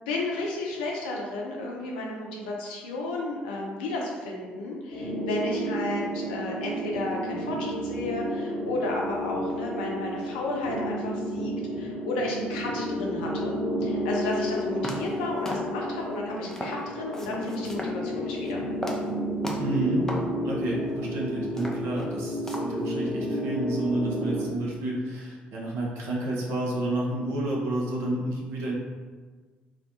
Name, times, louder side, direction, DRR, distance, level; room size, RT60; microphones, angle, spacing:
voice 1, 0.1-13.6 13.8-18.6, left 2 dB, 70° left, -1 dB, 0.4 m, -33 dB
sound 1, 4.9-24.5, equal, 45° left, 0.8 m, -31 dB
sound 2, 14.3-14.4 14.8-15.2 15.5-16.0 16.5-16.8 17.1-18.0 18.3-18.5 18.8-19.1 19.4-19.8 20.1-20.3 20.8-20.9 21.4-22.2 22.5-22.9, equal, 10° left, 0.4 m, -36 dB
voice 2, 19.6-20.0 20.4-28.7, right 1 dB, 60° right, -3 dB, 0.6 m, -30 dB
2.4 x 2.1 x 2.7 m, 1.4 s
figure-of-eight pair, 50°, 5 cm